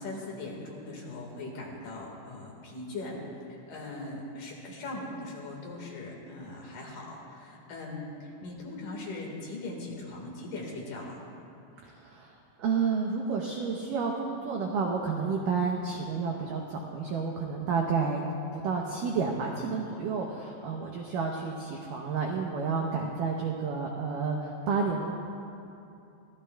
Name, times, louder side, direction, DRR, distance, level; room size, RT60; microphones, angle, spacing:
voice 1, 0.0-3.2 3.5-11.2 22.7-22.9, left 2 dB, 55° left, -2 dB, 3.0 m, -40 dB
voice 2, 11.8-18.2 18.5-25.1, right 5 dB, 85° right, 0 dB, 1.9 m, -30 dB
25.0 x 15.5 x 2.3 m, 2.8 s
omnidirectional pair, 4.9 m